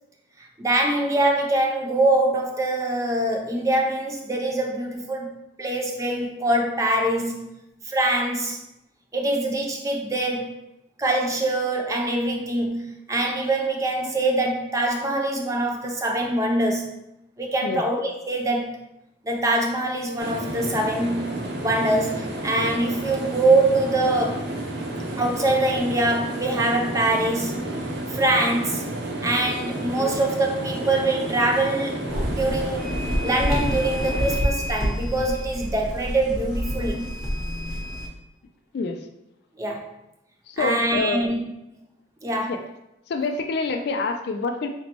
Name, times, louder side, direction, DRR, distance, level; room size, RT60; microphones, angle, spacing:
voice 1, 0.4-7.5 7.9-8.6 9.1-10.6 11.0-16.9 17.4-18.8 19.2-21.4 21.6-24.5 25.2-27.7 28.1-28.8 29.2-33.0 33.2-37.2 39.6-39.9 40.6-41.4 42.2-42.6, right 2 dB, 15° right, 1 dB, 0.4 m, -24 dB
sound 1, 20.2-34.4, right 1 dB, 60° right, 0.6 m, -31 dB
sound 2, 32.1-38.1, equal, ahead, 0.9 m, -28 dB
voice 2, 40.5-41.2 42.5-42.6 43.1-44.7, left 3 dB, 55° left, 5 dB, 0.3 m, -26 dB
4.2 x 3.0 x 2.8 m, 0.87 s
head